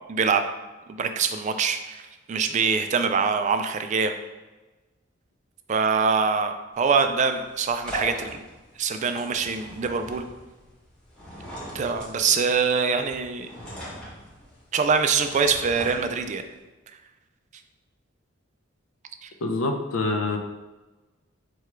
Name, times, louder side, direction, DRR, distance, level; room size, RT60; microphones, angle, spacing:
voice 1, 0.1-0.4 0.9-4.1 5.7-8.4 8.8-10.3 11.7-13.5 14.7-16.4 19.2-19.3, right 5 dB, 35° right, 8 dB, 0.3 m, -24 dB
sound 1, 6.7-16.6, equal, 5° left, 0.9 m, -41 dB
voice 2, 19.4-20.4, left 3 dB, 80° left, 5 dB, 0.5 m, -25 dB
4.7 x 2.3 x 4.5 m, 1.2 s
head